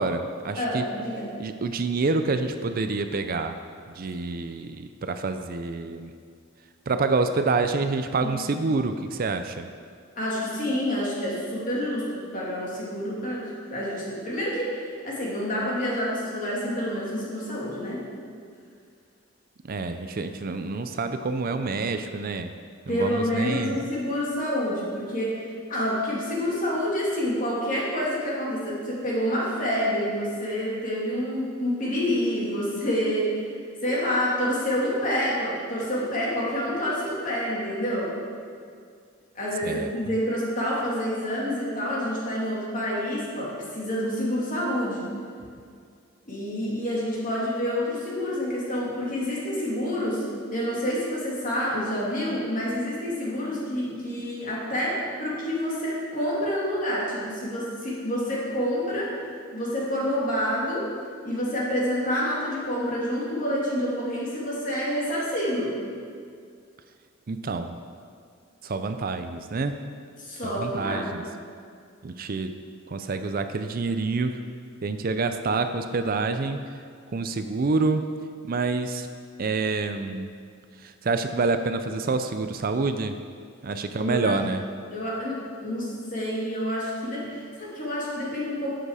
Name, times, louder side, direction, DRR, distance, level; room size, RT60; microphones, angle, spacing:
voice 1, 0.0-0.9 1.4-3.5 3.9-6.1 6.9-9.7 19.7-22.5 22.9-23.8 39.6-39.9 67.3-67.8 68.6-69.8 70.4-71.2 72.0-72.6 72.9-74.4 74.8-76.6 77.1-78.0 78.4-79.1 79.4-80.3 80.8-83.2 83.6-84.6, right 3 dB, 45° right, 8 dB, 0.5 m, -27 dB
voice 2, 0.6-1.3 8.2-8.3 10.2-18.0 22.9-33.5 33.8-38.1 39.3-45.1 46.3-59.1 59.5-60.9 61.2-65.7 70.2-71.3 84.0-84.3 84.9-88.7, equal, 40° left, -5 dB, 2.9 m, -28 dB
11.0 x 7.9 x 4.9 m, 2.2 s
head